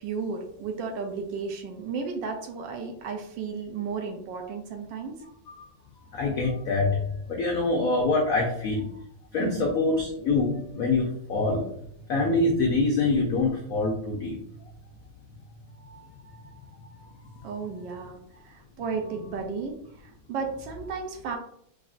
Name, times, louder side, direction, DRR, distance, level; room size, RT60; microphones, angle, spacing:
voice 1, 0.0-5.2 9.4-9.7 17.4-18.2 18.4-19.8 20.0-21.4, right 5 dB, 75° right, 3 dB, 1.2 m, -33 dB
voice 2, 6.1-7.0 7.3-8.8 9.3-11.6 12.1-14.4 15.9-16.0 16.8-17.0, left 3 dB, 85° left, 0 dB, 0.7 m, -25 dB
4.9 x 2.7 x 2.4 m, 0.70 s
omnidirectional pair, 2.2 m